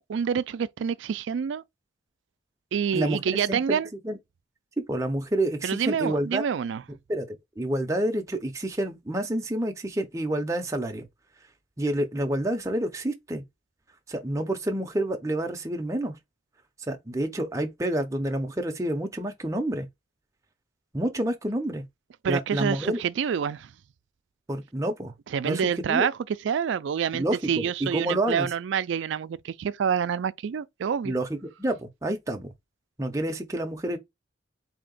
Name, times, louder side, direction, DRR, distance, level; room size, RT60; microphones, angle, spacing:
voice 1, 0.1-1.6 2.7-3.9 5.6-6.8 22.2-23.7 25.3-31.1, right 7 dB, 70° right, 0.3 m, -27 dB
voice 2, 3.5-3.8 4.0-4.2 4.9-6.4 7.1-7.3 7.6-11.1 11.8-13.4 14.1-16.2 16.9-19.9 20.9-21.8 22.3-23.0 24.5-25.1 25.4-25.6 25.9-26.1 27.1-28.5 31.0-32.5 33.0-34.0, right 1 dB, 15° right, 0.6 m, -28 dB
4.3 x 2.8 x 3.8 m
head